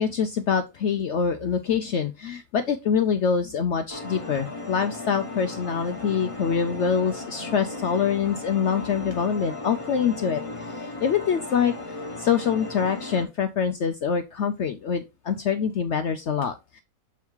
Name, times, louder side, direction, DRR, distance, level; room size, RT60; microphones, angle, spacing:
voice 1, 0.0-16.8, left 7 dB, 60° left, 8 dB, 0.8 m, -25 dB
sound 1, 3.9-13.3, left 2 dB, 25° left, 1.0 m, -36 dB
7.1 x 3.6 x 4.5 m, 0.25 s
omnidirectional pair, 1.5 m